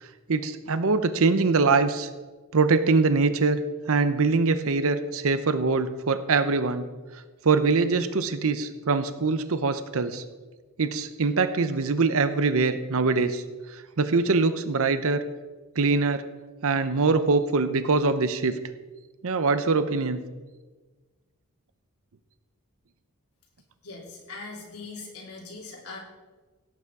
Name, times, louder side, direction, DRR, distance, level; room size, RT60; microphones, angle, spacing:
voice 1, 0.0-2.1 2.5-3.6 3.9-6.9 7.4-10.2 10.8-13.4 13.7-15.3 15.8-16.2 16.6-18.6 19.2-20.2, right 4 dB, 65° right, 11 dB, 0.7 m, -23 dB
voice 2, 23.8-26.0, left 3 dB, 90° left, -2 dB, 3.5 m, -41 dB
16.5 x 8.3 x 4.8 m, 1.3 s
head